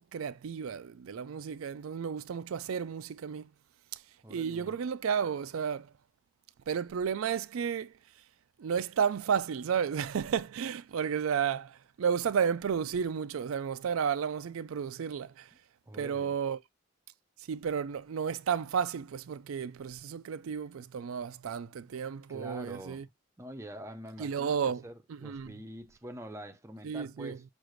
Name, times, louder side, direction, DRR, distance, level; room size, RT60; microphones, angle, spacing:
voice 1, 0.0-3.5 4.3-5.9 6.7-7.9 8.6-15.5 16.0-16.6 17.5-23.1 24.2-24.8 25.1-25.5 26.8-27.4, right 7 dB, 80° right, 0.4 m, -32 dB
voice 2, 4.2-4.8 15.9-16.4 22.3-23.1 23.4-27.4, right 1 dB, 15° right, 0.6 m, -45 dB
6.3 x 2.5 x 3.1 m
head